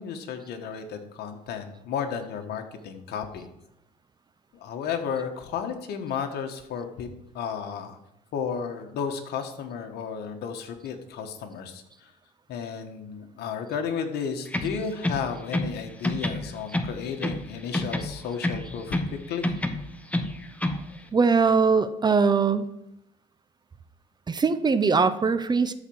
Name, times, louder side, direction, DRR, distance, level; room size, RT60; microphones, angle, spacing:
voice 1, 0.0-3.5 4.6-7.1 7.3-8.0 8.3-12.1 12.5-19.0 19.3-19.5, left 6 dB, 75° left, 4 dB, 1.6 m, -33 dB
sound 1, 14.5-15.8 16.0-17.5 17.7-19.2 19.4-20.9, left 1 dB, 10° left, 1.0 m, -28 dB
voice 2, 21.1-22.7 24.3-25.7, right 5 dB, 25° right, 12 dB, 0.7 m, -21 dB
13.0 x 4.4 x 7.2 m, 0.83 s
cardioid pair, 110°, 17 cm